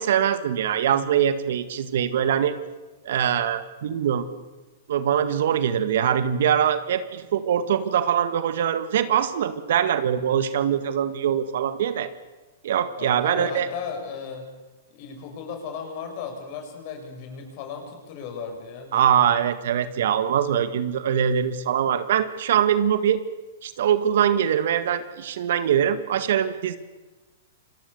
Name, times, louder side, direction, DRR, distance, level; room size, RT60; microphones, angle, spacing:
voice 1, 0.0-2.5 3.0-4.3 4.9-12.1 12.6-13.7 18.9-23.2 23.6-26.8, right 9 dB, 65° right, 11 dB, 1.9 m, -23 dB
voice 2, 13.0-14.5 14.9-19.2, left 6 dB, 50° left, 4 dB, 7.1 m, -36 dB
28.0 x 22.0 x 7.0 m, 1.2 s
hypercardioid pair, 110°, 0 cm